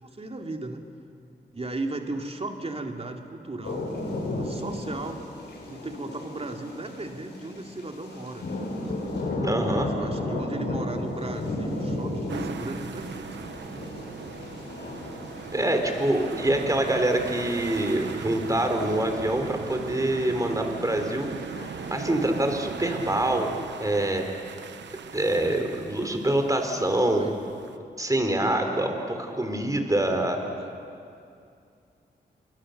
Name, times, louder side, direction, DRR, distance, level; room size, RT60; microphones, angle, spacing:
voice 1, 0.0-0.9 1.5-3.9 4.3-5.2 5.7-8.6 9.5-13.5 27.1-27.4 28.6-28.8 30.1-30.7, right 2 dB, 35° right, 3 dB, 2.8 m, -36 dB
sound 1, 3.6-22.0, left 1 dB, 75° left, 7.3 m, -35 dB
voice 2, 9.4-9.9 15.5-21.3 21.9-23.5 23.8-24.2 25.1-27.3 28.0-30.4, right 1 dB, 20° right, 5 dB, 4.1 m, -25 dB
sound 2, 12.3-27.8, right 7 dB, 85° right, 1.0 m, -39 dB
29.0 x 21.5 x 6.8 m, 2.5 s
cardioid pair, 55°, 18 cm